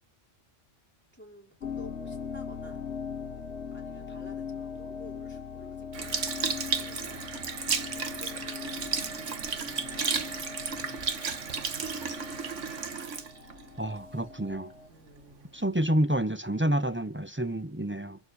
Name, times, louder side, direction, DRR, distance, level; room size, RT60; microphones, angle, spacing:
voice 1, 1.1-2.9 3.7-6.3 6.7-7.3 7.7-11.1 14.9-15.6, left 1 dB, 10° left, 5.3 m, -53 dB
sound 1, 1.6-14.9, left 6 dB, 65° left, 1.3 m, -41 dB
Sink (filling or washing) / Liquid, 5.9-14.5 15.1-15.3, right 5 dB, 75° right, 1.7 m, -33 dB
voice 2, 13.8-14.7 15.5-18.2, right 1 dB, 15° right, 0.5 m, -28 dB
26.0 x 12.0 x 4.6 m
omnidirectional pair, 1.3 m